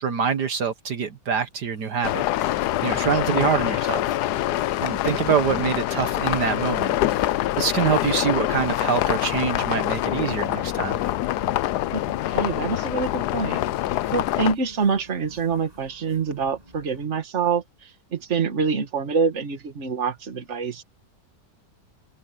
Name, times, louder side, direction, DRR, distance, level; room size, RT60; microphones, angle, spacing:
voice 1, 0.0-2.6 2.8-4.1 4.8-11.0, right 7 dB, 65° right, 1.8 m, -25 dB
sound 1, 1.5-17.1, right 1 dB, 20° right, 6.4 m, -47 dB
sound 2, 2.0-14.5, left 14 dB, 70° left, 1.1 m, -25 dB
voice 2, 5.0-5.4 11.9-13.6 14.1-20.8, right 5 dB, 40° right, 1.9 m, -26 dB
omnidirectional pair, 1.9 m